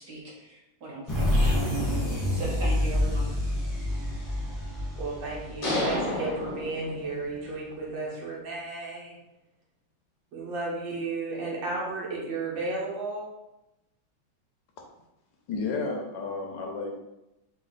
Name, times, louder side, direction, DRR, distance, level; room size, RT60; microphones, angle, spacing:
voice 1, 0.0-3.3, right 2 dB, 60° right, -5 dB, 1.6 m, -39 dB
sound 1, 1.1-6.6, left 1 dB, 15° left, 0.9 m, -27 dB
voice 2, 5.0-9.2 10.3-13.3, right 3 dB, 75° right, -5 dB, 1.9 m, -33 dB
sound 2, 5.6-7.4, left 1 dB, 55° left, 1.0 m, -30 dB
voice 3, 15.5-17.0, left 4 dB, 75° left, 2 dB, 1.2 m, -32 dB
4.2 x 2.4 x 3.9 m, 0.92 s
omnidirectional pair, 2.1 m